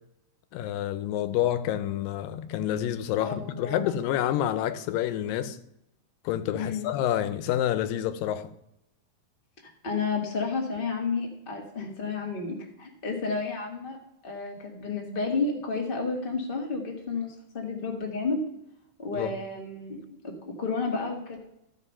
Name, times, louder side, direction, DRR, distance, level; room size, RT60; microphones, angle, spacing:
voice 1, 0.5-5.6 6.2-8.5 19.2-19.4, left 11 dB, 90° left, 2.4 m, -28 dB
voice 2, 3.2-4.0 6.5-6.9 9.8-14.0 14.2-18.4 19.0-21.4, left 4 dB, 20° left, 1.5 m, -31 dB
14.5 x 5.3 x 5.5 m
omnidirectional pair, 3.9 m